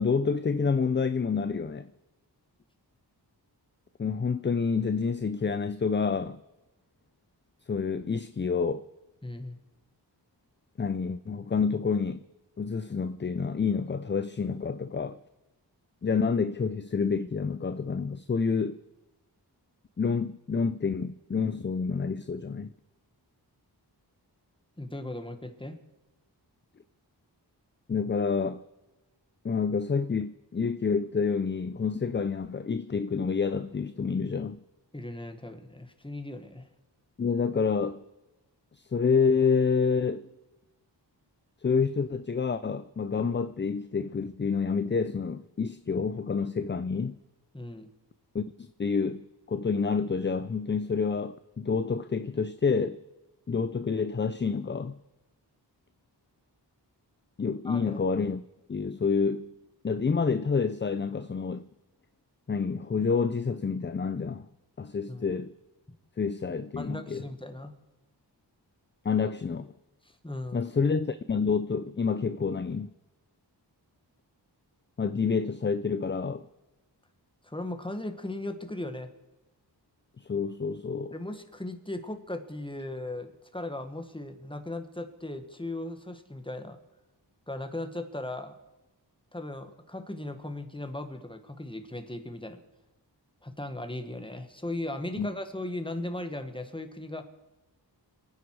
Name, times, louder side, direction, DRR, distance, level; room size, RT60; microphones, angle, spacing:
voice 1, 0.0-1.9 4.0-6.4 7.7-8.8 10.8-12.2 12.6-15.2 16.0-18.8 20.0-22.7 27.9-28.6 29.4-34.6 37.2-38.0 38.7-40.3 41.6-47.2 48.3-53.0 53.5-55.0 57.4-58.4 58.7-59.5 59.8-61.7 62.5-64.5 64.8-65.5 66.2-67.2 69.0-69.7 70.5-72.9 75.0-76.4 80.2-81.1 95.2-95.3, left 5 dB, 25° left, 0.5 m, -28 dB
voice 2, 9.2-9.6 24.8-25.8 34.9-36.7 47.5-47.9 57.6-58.0 65.1-65.3 66.8-67.7 70.0-70.6 77.4-79.1 81.1-86.8 87.5-88.5 89.3-92.6 93.4-97.2, left 1 dB, 10° left, 1.6 m, -37 dB
27.5 x 9.4 x 4.7 m
wide cardioid pair, 65°, 42 cm